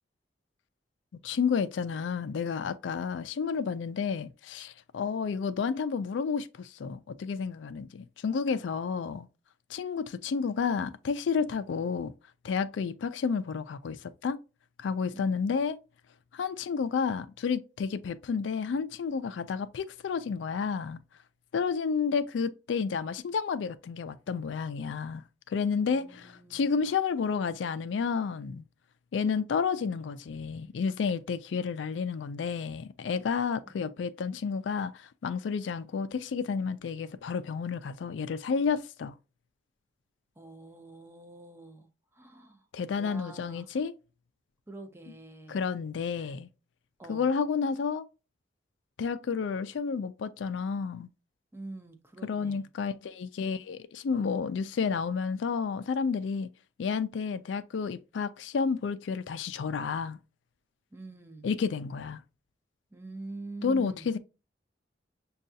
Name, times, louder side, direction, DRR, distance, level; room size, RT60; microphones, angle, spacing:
voice 1, 1.2-9.3 9.7-12.1 12.4-14.4 14.8-15.8 16.3-21.0 21.5-28.6 29.1-39.1 42.7-43.9 45.5-46.5 47.1-48.1 49.0-51.1 52.2-56.5 56.8-60.2 61.4-62.2 63.6-64.2, left 5 dB, 80° left, 0.4 m, -31 dB
voice 2, 25.9-26.7 33.7-33.9 40.4-42.7 43.0-43.7 44.7-45.7 46.1-46.3 47.0-47.3 51.5-52.7 60.9-61.5 62.9-64.1, right 2 dB, 15° right, 0.5 m, -46 dB
6.3 x 2.3 x 2.6 m
head